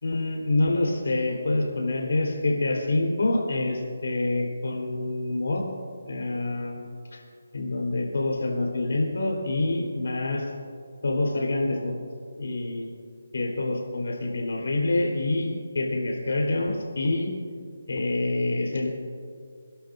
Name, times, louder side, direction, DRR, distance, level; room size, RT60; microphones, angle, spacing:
voice 1, 0.0-5.6 6.1-6.8 7.1-7.2 7.5-10.4 11.0-12.0 12.4-12.9 13.3-17.3 17.9-18.9, left 2 dB, 70° left, -1 dB, 4.1 m, -26 dB
29.0 x 11.5 x 2.7 m, 2.1 s
hypercardioid pair, 170°, 0 cm